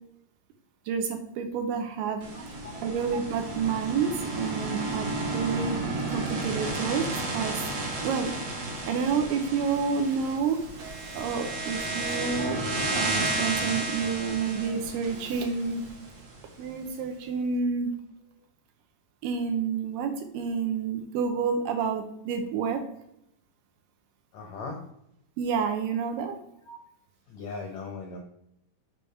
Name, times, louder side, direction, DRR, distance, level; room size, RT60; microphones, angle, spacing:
voice 1, 0.9-2.2 2.8-5.8 6.1-7.6 8.0-10.6 11.1-12.6 12.9-15.9 16.6-17.9 19.2-22.8 25.4-26.4, right 6 dB, 80° right, 5 dB, 2.2 m, -29 dB
sound 1, 2.2-16.4, right 2 dB, 60° right, 2.1 m, -32 dB
voice 2, 24.3-24.8 26.7-26.8 27.3-28.2, left 4 dB, 80° left, 2 dB, 1.6 m, -38 dB
6.9 x 3.4 x 5.4 m, 0.76 s
omnidirectional pair, 4.3 m